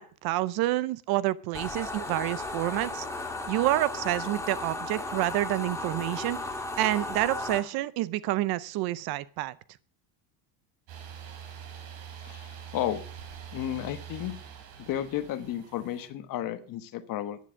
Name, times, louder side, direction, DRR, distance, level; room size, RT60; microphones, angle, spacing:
voice 1, 0.0-3.1 3.5-6.4 6.8-9.5, right 16 dB, 50° right, 18 dB, 0.6 m, -28 dB
sound 1, 1.5-7.6, left 2 dB, 5° left, 1.5 m, -35 dB
sound 2, 10.9-16.1, right 8 dB, 65° right, 4.0 m, -44 dB
voice 2, 12.2-13.0 13.5-14.4 14.8-17.4, left 11 dB, 40° left, 11 dB, 1.2 m, -33 dB
11.0 x 10.5 x 6.3 m, 0.43 s
cardioid pair, 165°, 50 cm